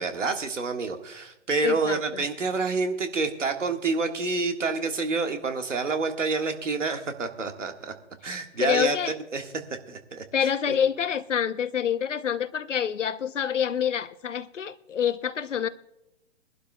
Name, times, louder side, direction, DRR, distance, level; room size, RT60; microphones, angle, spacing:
voice 1, 0.0-7.9 8.2-9.0 9.3-9.5 9.9-10.5, right 4 dB, 80° right, 1.8 m, -28 dB
voice 2, 1.6-2.2 8.6-9.1 10.3-15.7, left 8 dB, 80° left, 0.9 m, -27 dB
22.5 x 12.0 x 2.3 m
hypercardioid pair, 130°, 36 cm